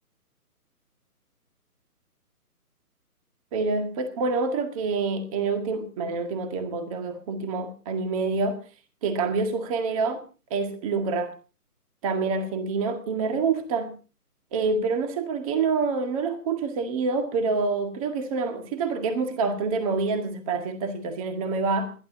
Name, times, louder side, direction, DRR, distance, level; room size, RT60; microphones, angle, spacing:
voice 1, 3.5-8.6 9.0-10.2 10.5-11.3 12.0-14.0 14.5-21.9, right 4 dB, 20° right, 1.8 m, -27 dB
29.5 x 11.5 x 2.7 m
figure-of-eight pair, 150°, 46 cm